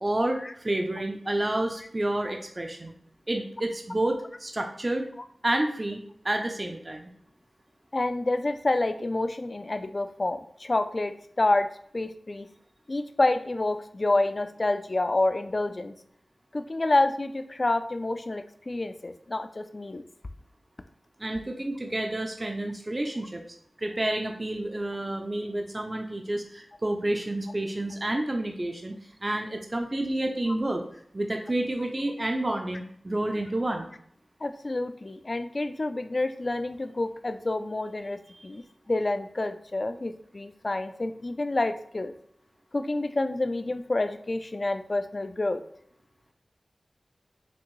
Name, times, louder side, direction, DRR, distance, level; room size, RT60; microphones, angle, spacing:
voice 1, 0.0-2.9 3.3-5.1 5.4-7.1 21.2-23.4 23.8-28.9 29.2-30.8 31.1-33.9 38.3-38.4, right 1 dB, 30° right, 3 dB, 0.5 m, -29 dB
voice 2, 7.9-12.5 12.9-16.0 16.5-20.0 34.4-38.6 38.9-42.1 42.7-45.6, left 2 dB, 40° left, 9 dB, 0.4 m, -28 dB
5.9 x 2.6 x 3.1 m, 0.64 s
wide cardioid pair, 90°, 0 cm